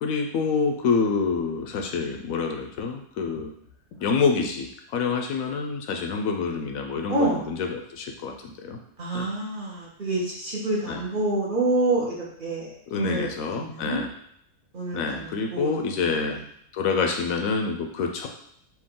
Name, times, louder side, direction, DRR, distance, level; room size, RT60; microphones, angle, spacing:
voice 1, 0.0-3.5 4.0-8.3 8.6-8.8 9.1-9.3 10.9-11.0 12.9-14.1 14.9-16.4 16.7-18.3, left 5 dB, 75° left, 3 dB, 1.0 m, -27 dB
voice 2, 7.1-7.5 9.0-14.0 14.7-16.2, right 2 dB, 40° right, -5 dB, 1.1 m, -28 dB
4.4 x 2.5 x 3.7 m, 0.68 s
omnidirectional pair, 1.5 m